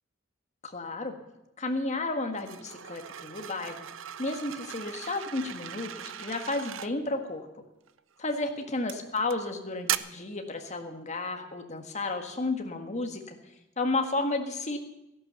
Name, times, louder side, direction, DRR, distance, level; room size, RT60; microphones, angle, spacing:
voice 1, 0.6-1.2 1.6-3.9 4.2-7.5 8.2-13.3 13.8-14.8, left 2 dB, 35° left, 5 dB, 1.7 m, -32 dB
sound 1, 2.4-6.9 7.9-8.2 8.9-9.4 9.9-10.0, right 11 dB, 75° right, 0.6 m, -37 dB
14.0 x 11.0 x 6.9 m, 0.91 s
head